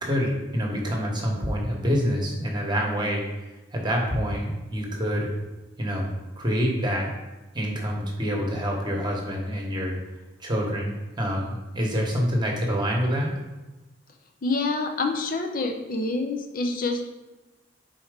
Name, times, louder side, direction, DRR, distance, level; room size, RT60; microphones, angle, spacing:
voice 1, 0.0-3.2 3.7-5.3 5.8-6.1 6.4-7.1 7.5-10.0 10.4-13.3, equal, 25° right, 0 dB, 1.1 m, -26 dB
voice 2, 14.4-17.0, left 3 dB, 50° left, 4 dB, 0.5 m, -27 dB
4.4 x 4.2 x 5.0 m, 1.1 s
head